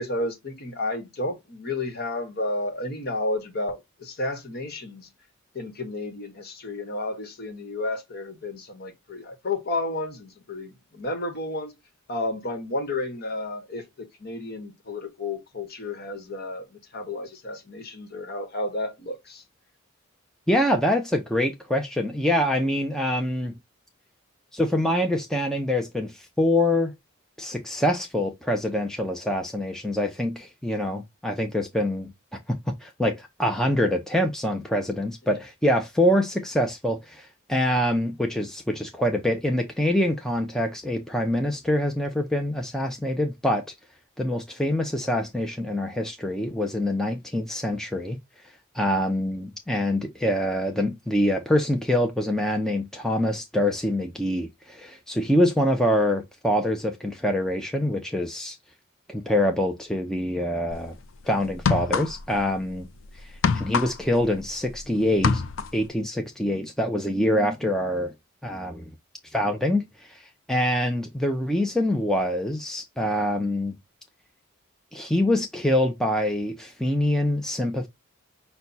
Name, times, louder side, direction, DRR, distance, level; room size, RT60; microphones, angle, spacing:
voice 1, 0.0-5.1 5.5-11.7 12.1-19.4, left 2 dB, 50° left, 1.1 m, -32 dB
voice 2, 20.5-23.5 24.5-26.9 27.4-32.1 32.5-43.6 44.2-48.2 48.7-58.6 59.1-61.0 61.2-62.9 63.2-65.4 65.7-68.1 68.4-68.9 69.3-73.8 74.9-77.9, left 1 dB, ahead, 0.5 m, -25 dB
sound 1, 60.7-60.9 61.5-62.4 62.7-64.8 65.1-65.9, left 5 dB, 70° left, 0.5 m, -25 dB
5.7 x 2.2 x 3.9 m
head